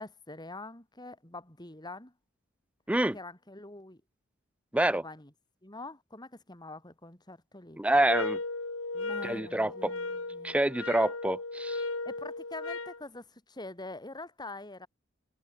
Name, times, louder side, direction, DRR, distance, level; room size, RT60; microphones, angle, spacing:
voice 1, 0.0-2.1 3.1-4.0 4.9-5.3 5.6-7.8 8.9-10.6 12.1-14.9, left 2 dB, 20° left, 3.7 m, -45 dB
voice 2, 4.7-5.0 7.8-8.4 9.2-9.9 10.4-11.8, right 1 dB, 5° right, 0.4 m, -27 dB
sound 1, 8.1-13.0, left 3 dB, 80° left, 3.3 m, -36 dB
head